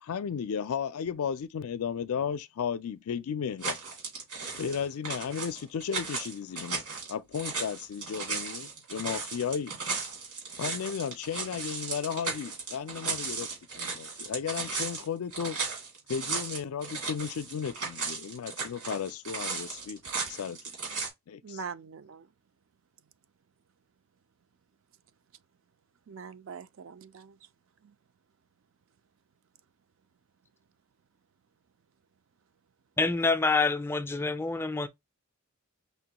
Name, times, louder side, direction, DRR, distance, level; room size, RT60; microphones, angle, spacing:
voice 1, 0.0-3.8 4.5-6.8 7.1-9.7 10.6-13.5 13.8-15.6 16.1-20.0 20.3-20.6 21.3-21.6, left 7 dB, 80° left, 0.4 m, -34 dB
sound 1, 3.6-21.1, right 4 dB, 80° right, 2.5 m, -36 dB
voice 2, 21.4-22.3 26.1-27.4 27.8-28.0, right 5 dB, 60° right, 0.4 m, -43 dB
voice 3, 33.0-34.9, left 3 dB, 10° left, 0.3 m, -27 dB
5.5 x 2.2 x 2.9 m
head